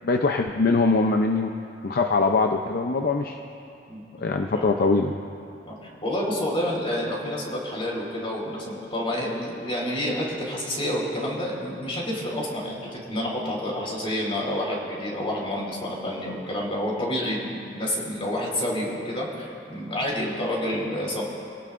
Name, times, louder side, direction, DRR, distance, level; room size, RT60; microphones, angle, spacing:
voice 1, 0.0-1.5 1.8-3.4 4.2-5.1, left 3 dB, 55° left, 4 dB, 0.6 m, -22 dB
voice 2, 5.6-21.2, left 1 dB, 30° left, -3 dB, 4.2 m, -29 dB
26.5 x 17.5 x 2.5 m, 2.6 s
head